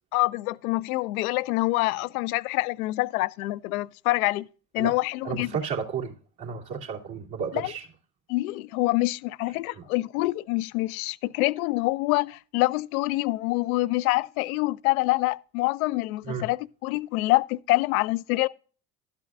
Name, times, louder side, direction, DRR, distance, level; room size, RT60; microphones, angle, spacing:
voice 1, 0.1-4.5 4.7-5.5 7.5-7.7 8.3-16.6 16.8-18.5, left 21 dB, 75° left, 0.6 m, -26 dB
voice 2, 5.2-7.9 9.7-9.9 16.2-16.5, right 6 dB, 55° right, 2.7 m, -33 dB
12.0 x 8.2 x 2.5 m
hypercardioid pair, 65°, 44 cm